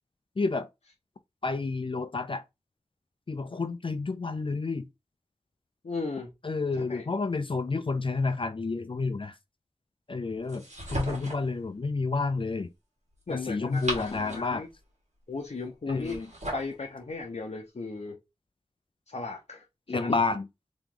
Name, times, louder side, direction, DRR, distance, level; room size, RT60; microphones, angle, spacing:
voice 1, 0.4-0.7 1.4-2.4 3.3-4.9 6.4-9.4 10.1-10.6 10.9-12.7 13.3-14.6 15.9-16.3 19.9-20.4, left 3 dB, 50° left, 0.4 m, -30 dB
voice 2, 5.8-6.3 6.8-7.0 13.3-14.7 15.3-16.2 16.5-18.2 19.1-20.2, left 3 dB, 75° left, 0.7 m, -36 dB
sound 1, 10.5-11.5 13.5-14.6 15.9-16.8, right 1 dB, 85° right, 1.6 m, -36 dB
3.1 x 2.9 x 3.7 m
wide cardioid pair, 50°, 12 cm